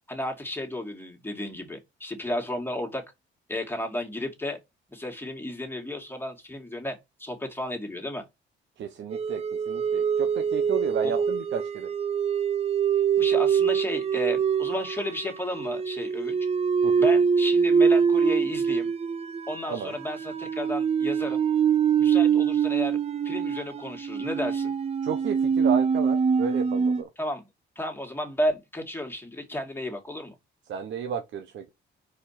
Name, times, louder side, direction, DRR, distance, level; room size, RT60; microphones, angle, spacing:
voice 1, 0.1-3.0 3.5-4.6 4.9-8.3 11.0-11.2 13.2-16.4 16.9-18.9 19.5-21.4 22.0-23.0 23.2-24.7 27.2-27.4 27.8-30.3, left 1 dB, 10° left, 2.5 m, -33 dB
voice 2, 8.8-11.9 16.8-16.9 19.7-19.9 25.0-27.1 30.7-31.7, right 8 dB, 70° right, 1.1 m, -33 dB
sound 1, 9.1-27.0, right 6 dB, 30° right, 0.6 m, -24 dB
5.0 x 4.6 x 5.8 m
cardioid pair, 90°, 20 cm